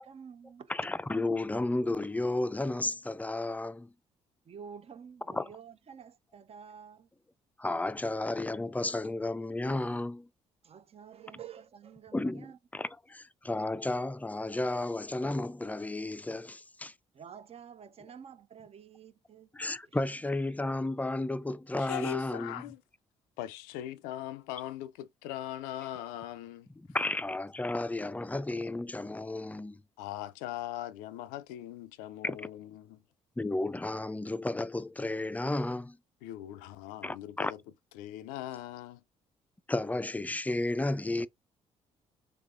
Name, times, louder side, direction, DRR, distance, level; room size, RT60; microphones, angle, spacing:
voice 1, 0.0-0.7 4.5-7.1 10.6-12.6 17.1-19.5 19.9-20.0, right 7 dB, 45° right, 0.5 m, -49 dB
voice 2, 0.7-3.9 5.3-5.5 7.6-10.3 12.1-12.5 12.7-16.9 19.5-22.6 26.9-29.8 32.2-32.5 33.4-36.0 37.0-37.5 39.7-41.3, left 2 dB, 10° left, 0.4 m, -33 dB
voice 3, 21.8-22.8 23.4-26.7 30.0-33.0 36.2-37.5 38.0-39.0, left 12 dB, 85° left, 0.4 m, -40 dB
3.4 x 3.4 x 2.5 m
hypercardioid pair, 55°, 15 cm